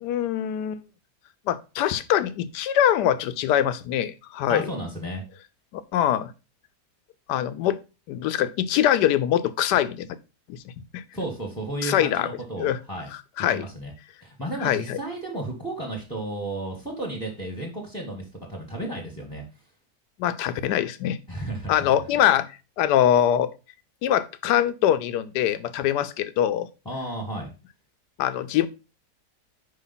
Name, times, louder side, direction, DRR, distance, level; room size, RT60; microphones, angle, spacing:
voice 1, 0.0-0.8 1.5-4.7 5.9-6.3 7.3-7.8 8.1-10.1 10.5-10.6 10.9-11.0 11.8-12.3 12.6-12.8 13.4-13.7 14.6-15.0 20.2-21.2 21.7-22.5 22.8-23.5 24.0-26.7 28.2-28.7, left 11 dB, 80° left, 1.2 m, -23 dB
voice 2, 4.5-5.2 11.1-13.1 13.4-13.9 14.2-19.4 21.3-21.9 26.8-27.5, right 1 dB, 5° left, 1.1 m, -33 dB
5.2 x 5.0 x 4.0 m
omnidirectional pair, 1.8 m